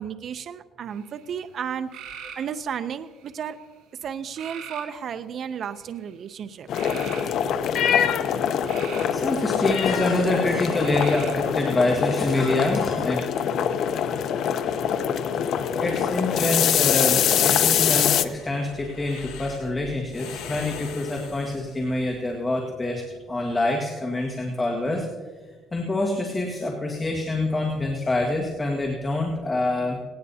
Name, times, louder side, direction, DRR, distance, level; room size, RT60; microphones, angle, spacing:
voice 1, 0.0-1.9 2.3-3.6 4.0-6.7, right 8 dB, 50° right, 10 dB, 0.6 m, -33 dB
sound 1, 0.9-1.4 1.9-2.5 3.1-3.6 4.4-4.9 5.6-6.0 6.7-7.2 8.3-9.2 10.8-11.5, right 8 dB, 90° right, 4.4 m, -40 dB
sound 2, 6.7-18.3, left 8 dB, 60° left, 0.7 m, -24 dB
voice 2, 9.1-13.2 15.7-25.1 25.7-30.0, left 2 dB, 20° left, 0 dB, 1.7 m, -26 dB
sound 3, 17.7-22.2, left 6 dB, 90° left, 2.2 m, -41 dB
18.5 x 18.0 x 2.8 m, 1.4 s
cardioid pair, 135°, 0 cm